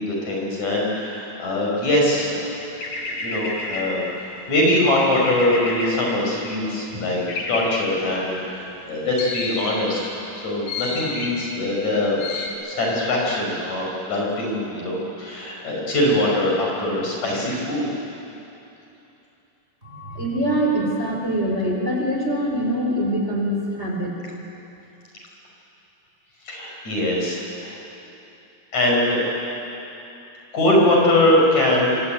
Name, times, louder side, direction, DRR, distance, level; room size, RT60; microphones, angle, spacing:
voice 1, 0.0-2.5 3.2-7.2 7.5-10.0 10.4-12.2 12.6-17.9 26.5-27.7 28.7-29.3 30.5-32.0, left 1 dB, 65° left, -2 dB, 7.4 m, -22 dB
sound 1, 2.8-4.2 5.1-6.2 7.3-8.0 9.2-9.9 10.7-11.4 12.2-12.5, left 3 dB, 85° left, 4.8 m, -30 dB
voice 2, 19.8-24.2, right 1 dB, 20° right, -1 dB, 4.0 m, -24 dB
26.0 x 25.0 x 9.1 m, 2.9 s
omnidirectional pair, 3.5 m